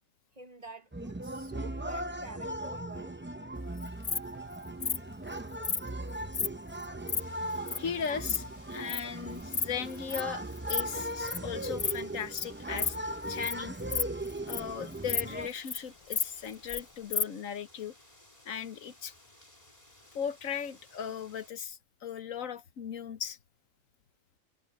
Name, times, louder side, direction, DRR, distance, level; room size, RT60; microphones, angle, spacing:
voice 1, 0.3-3.2, right 2 dB, 35° right, 0.9 m, -48 dB
sound 1, 0.9-15.5, right 1 dB, 15° right, 0.4 m, -38 dB
Insect, 3.8-4.2 4.8-5.0 5.6-5.8 6.3-6.5 6.8-7.2 7.7-7.8 8.0-8.4 8.9-9.0 9.4-9.7 9.9-10.2 10.6-10.8 11.1-11.4 11.8-12.0 12.3-12.4 12.8-12.9 13.3-13.5 13.8-14.7 15.1-15.2 15.5-15.8 16.1-16.8 17.1-17.2, left 6 dB, 50° left, 0.3 m, -31 dB
sound 2, 7.2-21.5, left 1 dB, 30° left, 3.7 m, -58 dB
voice 2, 7.8-13.0 13.3-13.8 14.5-17.9 18.4-19.1 20.1-23.4, left 7 dB, 85° left, 1.4 m, -37 dB
omnidirectional pair, 1.4 m